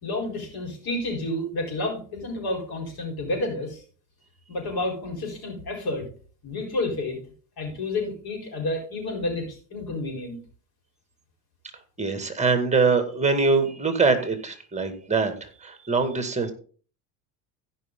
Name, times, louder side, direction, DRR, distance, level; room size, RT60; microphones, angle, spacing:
voice 1, 0.0-3.8 4.5-6.1 6.4-7.2 7.6-10.4, left 2 dB, 50° left, 3 dB, 4.5 m, -30 dB
voice 2, 12.0-16.5, right 4 dB, 15° right, 8 dB, 2.1 m, -23 dB
16.0 x 5.6 x 3.8 m, 0.41 s
supercardioid pair, 90°, 46 cm